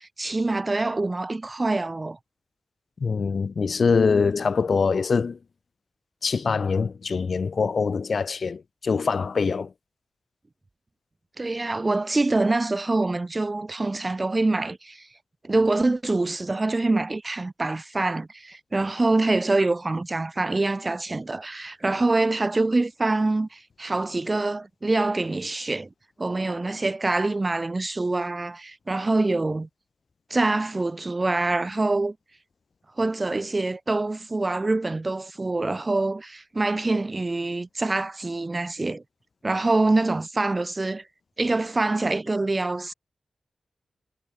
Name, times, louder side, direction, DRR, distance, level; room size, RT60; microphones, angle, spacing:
voice 1, 0.0-2.2 11.4-15.1 15.4-25.9 26.2-29.7 30.3-32.1 33.0-39.0 39.4-41.0 41.4-42.9, right 2 dB, 30° right, 1.8 m, -25 dB
voice 2, 3.0-5.4 6.2-9.7, left 5 dB, 60° left, 0.9 m, -24 dB
wide cardioid pair, 90°, 0 cm